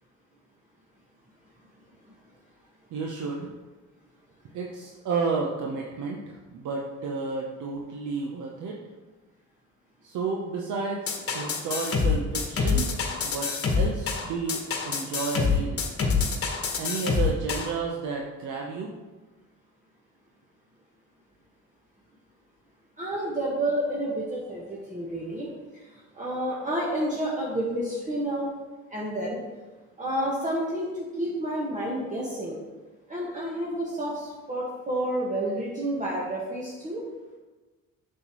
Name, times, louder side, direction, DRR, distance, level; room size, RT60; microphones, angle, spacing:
voice 1, 2.9-3.5 4.5-8.8 10.0-12.9 13.2-14.6 14.8-15.8 16.8-18.9, right 4 dB, 80° right, 0 dB, 0.8 m, -31 dB
sound 1, 11.1-17.7, left 5 dB, 50° left, 1.2 m, -26 dB
voice 2, 23.0-25.5 26.1-28.5 28.9-29.4 30.0-32.6 33.1-37.0, right 1 dB, 25° right, -5 dB, 1.5 m, -30 dB
7.9 x 6.7 x 3.0 m, 1.2 s
cardioid pair, 90°, 30 cm